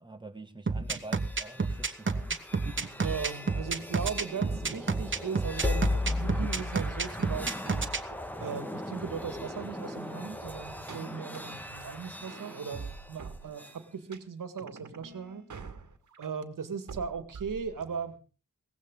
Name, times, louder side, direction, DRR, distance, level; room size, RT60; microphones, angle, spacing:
voice 1, 0.0-2.4, right 2 dB, 15° right, 6 dB, 2.4 m, -46 dB
sound 1, 0.7-8.0, right 4 dB, 40° right, 1.4 m, -30 dB
sound 2, 1.0-13.8, left 2 dB, 5° left, 1.7 m, -37 dB
voice 2, 3.0-7.9 8.4-15.4 16.2-18.2, right 6 dB, 80° right, 10 dB, 2.0 m, -38 dB
sound 3, 6.7-6.8 7.2-7.3 7.7-7.8 8.1-8.2 8.6-8.7 9.0-9.1 9.5-9.6 10.0-10.1 10.4-10.5 10.9-11.4 11.8-11.9 12.3-13.8 14.1-14.2 14.6-16.4 16.9-18.2, right 5 dB, 65° right, 2.0 m, -46 dB
18.0 x 15.5 x 3.9 m, 0.36 s
wide cardioid pair, 80°, 32 cm